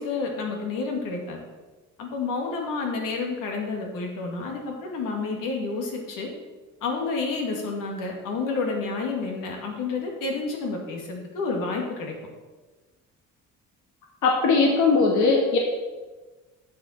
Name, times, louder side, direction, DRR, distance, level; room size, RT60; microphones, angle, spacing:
voice 1, 0.0-1.4 2.0-6.3 6.8-12.1, left 4 dB, 90° left, 1 dB, 2.4 m, -30 dB
voice 2, 14.2-15.6, left 4 dB, 65° left, 0 dB, 1.6 m, -19 dB
11.5 x 7.7 x 4.4 m, 1.3 s
cardioid pair, 145°, 32 cm